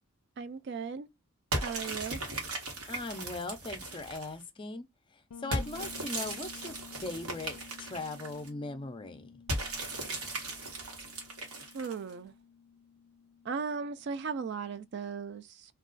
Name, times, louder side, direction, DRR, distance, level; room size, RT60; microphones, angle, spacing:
voice 1, 0.4-1.1 1.6-2.2 11.7-12.3 13.5-15.7, right 5 dB, 50° right, 0.3 m, -37 dB
sound 1, 1.5-4.4 5.5-8.5 9.5-12.1, right 1 dB, 90° right, 1.2 m, -37 dB
voice 2, 2.9-4.9 5.4-9.3, left 2 dB, 25° left, 0.4 m, -39 dB
Bass guitar, 5.3-15.0, left 6 dB, 85° left, 0.4 m, -53 dB
2.3 x 2.3 x 3.7 m
head